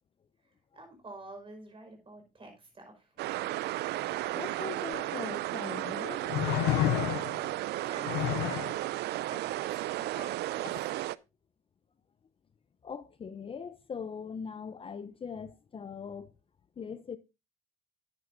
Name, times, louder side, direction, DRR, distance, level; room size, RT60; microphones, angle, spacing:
voice 1, 0.7-3.1 7.3-7.5 7.8-8.7 9.3-10.9, right 2 dB, 30° right, 4.9 m, -48 dB
sound 1, 3.2-11.2, right 16 dB, 70° right, 0.4 m, -34 dB
voice 2, 4.3-6.5 7.7-7.9 8.7-8.9 12.8-16.3 16.8-17.2, left 6 dB, 30° left, 0.6 m, -41 dB
sound 2, 4.9-5.0 6.3-7.5 8.0-8.7 10.6-10.8, left 15 dB, 85° left, 0.4 m, -29 dB
10.5 x 9.6 x 2.6 m
cardioid pair, 95°, 18 cm